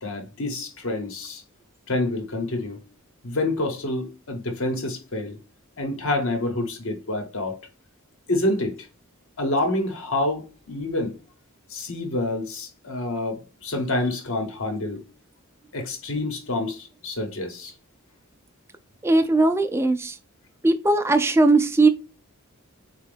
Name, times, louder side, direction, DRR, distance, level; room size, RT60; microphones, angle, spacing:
voice 1, 0.0-1.4 1.9-2.8 3.2-5.4 5.8-7.6 8.3-8.9 9.4-11.1 11.7-15.0 15.7-17.7, left 2 dB, 65° left, 1.0 m, -27 dB
voice 2, 19.0-20.2 20.6-21.9, right 2 dB, 10° right, 0.4 m, -19 dB
4.2 x 2.3 x 3.3 m
head